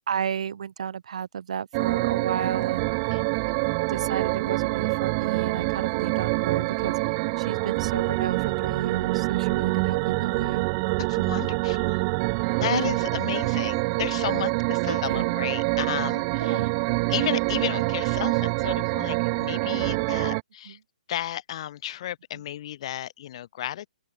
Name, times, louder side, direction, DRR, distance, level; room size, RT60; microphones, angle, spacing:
voice 1, 0.1-2.9 3.9-6.9 7.4-10.6 12.7-13.0 14.9-15.3 16.4-16.7, right 8 dB, 55° right, 1.0 m, -32 dB
sound 1, 1.7-20.4, right 32 dB, 30° right, 0.4 m, -26 dB
voice 2, 11.1-12.0 12.6-16.7 17.1-20.8 21.1-23.9, left 12 dB, 45° left, 2.1 m, -33 dB
open air
figure-of-eight pair, 125°, 4 cm